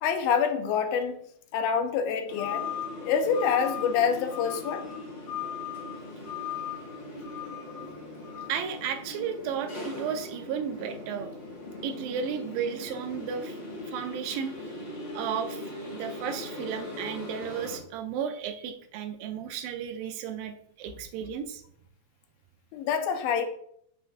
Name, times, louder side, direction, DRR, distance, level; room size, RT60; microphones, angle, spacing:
voice 1, 0.0-1.2 1.5-2.7 3.0-4.8 22.7-23.4, left 7 dB, 90° left, 7 dB, 2.4 m, -26 dB
sound 1, 2.3-17.8, left 4 dB, 40° left, 1.1 m, -38 dB
voice 2, 8.5-11.3 11.8-13.6 13.9-14.5 15.1-21.6, right 7 dB, 80° right, 6 dB, 2.1 m, -34 dB
7.6 x 6.3 x 2.4 m, 0.69 s
omnidirectional pair, 4.2 m